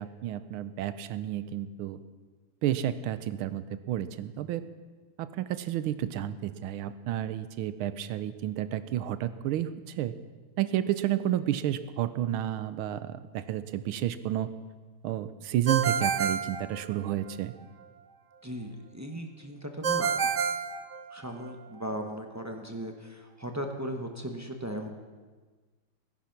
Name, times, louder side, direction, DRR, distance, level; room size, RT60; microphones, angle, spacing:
voice 1, 0.0-2.0 2.6-4.6 5.2-9.7 10.0-10.1 10.6-14.5 15.0-17.5, right 12 dB, 80° right, 13 dB, 1.5 m, -31 dB
Ringtone, 15.7-17.3 19.8-21.5, right 6 dB, 60° right, 0.8 m, -29 dB
voice 2, 18.4-20.1 21.1-24.9, equal, 20° right, 3 dB, 0.5 m, -37 dB
17.5 x 11.0 x 5.9 m, 1.4 s
omnidirectional pair, 2.3 m